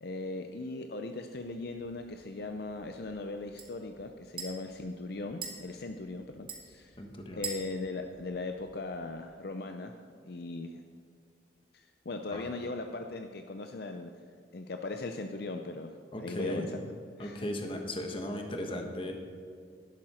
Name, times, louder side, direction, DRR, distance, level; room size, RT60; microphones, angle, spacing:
voice 1, 0.0-7.0 7.3-10.0 10.2-10.8 11.7-14.2 14.5-16.9 17.2-17.5, left 2 dB, 60° left, 5 dB, 0.6 m, -39 dB
sound 1, 1.3-9.2, right 4 dB, 25° right, 1.7 m, -47 dB
voice 2, 7.0-7.4 12.3-12.4 16.1-16.7 17.2-19.1, left 1 dB, 30° left, 3 dB, 1.3 m, -36 dB
11.5 x 11.5 x 4.4 m, 2.3 s
head